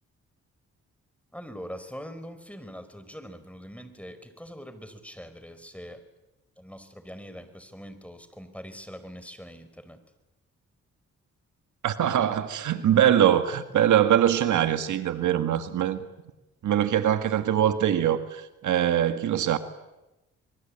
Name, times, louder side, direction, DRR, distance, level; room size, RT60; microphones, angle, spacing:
voice 1, 1.3-6.0 6.6-10.0, equal, 5° left, 4.9 m, -43 dB
voice 2, 11.8-16.0 16.6-19.6, right 10 dB, 75° right, 1.7 m, -23 dB
26.0 x 22.0 x 8.7 m
supercardioid pair, 55°, 30 cm